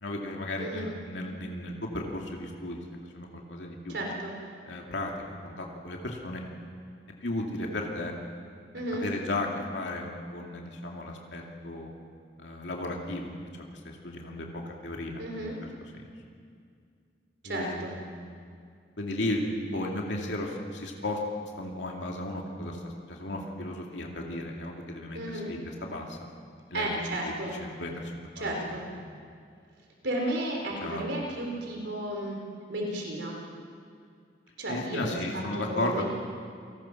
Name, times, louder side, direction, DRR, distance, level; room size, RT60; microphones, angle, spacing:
voice 1, 0.0-2.8 3.1-3.9 4.7-5.1 5.4-6.4 7.2-8.1 8.9-9.5 9.7-11.9 12.4-15.5 15.9-16.0 17.4-18.2 19.0-21.2 21.6-26.2 26.7-26.9 27.2-27.3 27.6-28.7 29.0-29.1 30.8-31.1 34.7-36.1, left 1 dB, 75° left, 0 dB, 2.5 m, -35 dB
voice 2, 0.6-0.9 3.9-4.3 8.7-9.1 15.2-15.6 17.4-17.9 25.1-25.5 26.7-27.5 28.4-28.8 30.0-32.4 32.7-33.4 34.6-36.1, right 1 dB, 75° right, 0 dB, 3.8 m, -33 dB
28.5 x 19.5 x 5.9 m, 2.3 s
head